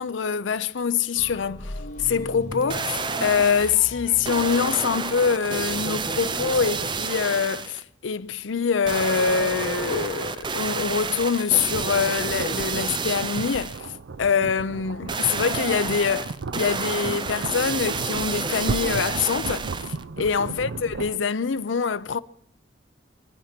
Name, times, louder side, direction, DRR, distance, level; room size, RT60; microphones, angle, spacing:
voice 1, 0.0-13.9 14.2-19.7 20.2-22.2, left 6 dB, 85° left, 0.6 m, -24 dB
sound 1, 1.2-4.5, left 1 dB, 40° left, 2.1 m, -37 dB
sound 2, 2.5-3.8 4.2-7.8 8.9-13.8 15.1-20.0 20.5-20.6, right 4 dB, 25° right, 0.6 m, -30 dB
sound 3, 11.7-21.2, right 4 dB, 85° right, 0.5 m, -35 dB
26.0 x 9.4 x 5.9 m
head